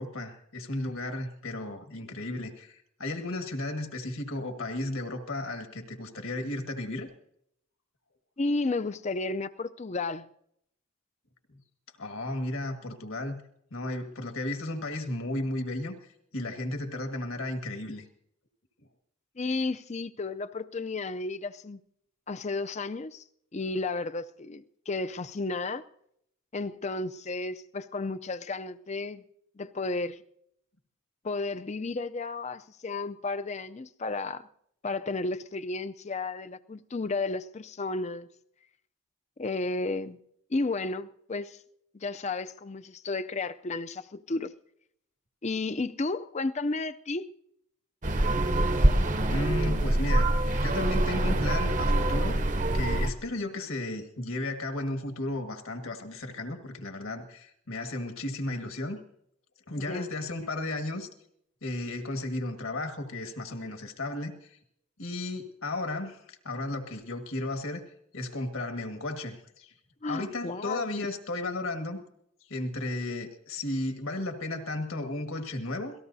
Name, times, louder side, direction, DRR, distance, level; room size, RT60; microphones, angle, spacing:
voice 1, 0.0-7.1 11.5-11.6 12.0-13.4 13.7-15.9 16.3-18.1 49.3-52.4 52.7-59.0 59.7-61.1 61.6-64.6 65.0-67.8 68.1-69.7 70.1-72.0 72.5-75.9, left 2 dB, 70° left, 1.8 m, -34 dB
voice 2, 8.4-10.3 19.4-21.8 22.3-23.2 23.5-25.8 26.5-29.2 29.6-30.2 31.2-34.4 34.8-38.3 39.4-40.2 40.5-41.6 41.9-44.5 45.4-47.3 59.8-60.1 70.0-71.1, left 3 dB, 30° left, 0.5 m, -33 dB
sound 1, 48.0-53.1, right 1 dB, 35° right, 0.8 m, -25 dB
26.5 x 18.5 x 2.7 m
head